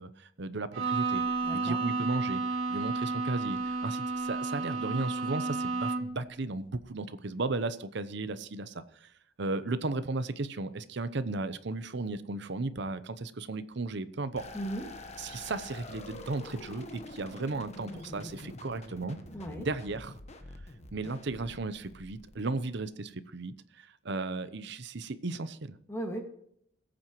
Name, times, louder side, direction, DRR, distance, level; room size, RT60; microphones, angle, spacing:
voice 1, 0.0-1.2 1.5-9.1 9.4-14.5 15.2-19.2 19.6-20.1 20.9-25.8, right 3 dB, 60° right, 13 dB, 0.8 m, -35 dB
Bowed string instrument, 0.7-6.2, right 3 dB, 80° right, 2.1 m, -32 dB
voice 2, 1.4-1.8 14.5-14.9 19.3-19.7 25.9-26.2, right 1 dB, 15° left, 2 dB, 1.9 m, -36 dB
sound 1, 14.4-22.8, left 2 dB, 35° left, 1.2 m, -46 dB
20.0 x 8.7 x 3.0 m, 0.71 s
head